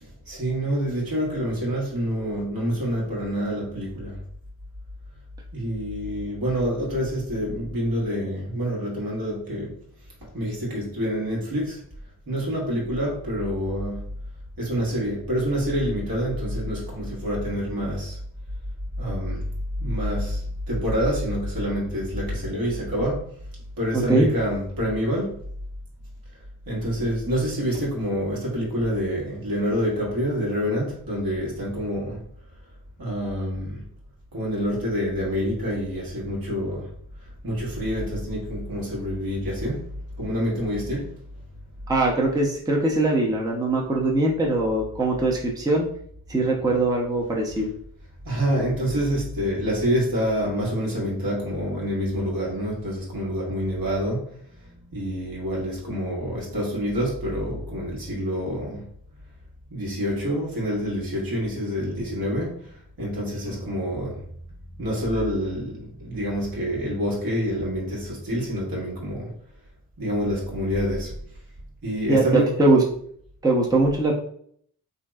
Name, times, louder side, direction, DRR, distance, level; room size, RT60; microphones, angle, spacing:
voice 1, 0.0-4.2 5.5-9.8 10.2-11.8 12.3-14.1 14.6-18.2 19.0-19.5 19.8-23.3 23.8-25.4 26.7-32.2 33.0-33.8 34.3-36.9 37.4-41.1 48.2-54.3 54.9-58.9 59.7-64.2 64.8-69.3 70.0-71.2 71.8-72.5, equal, 65° right, 1.4 m, -27 dB
voice 2, 23.9-24.3 41.9-45.9 46.3-47.7 72.1-72.8 73.4-74.1, right 2 dB, 10° right, 0.6 m, -21 dB
3.0 x 2.6 x 2.3 m
cardioid pair, 50°, 38 cm